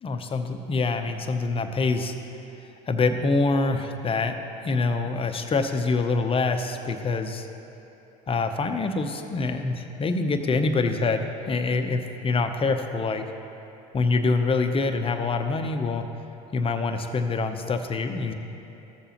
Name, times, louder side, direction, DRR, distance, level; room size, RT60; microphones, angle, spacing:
voice 1, 0.0-2.1 2.9-7.5 8.3-13.3 13.9-16.1 16.5-18.3, left 3 dB, 25° left, 7 dB, 0.7 m, -25 dB
15.0 x 6.8 x 2.9 m, 2.9 s
hypercardioid pair, 75°, 20 cm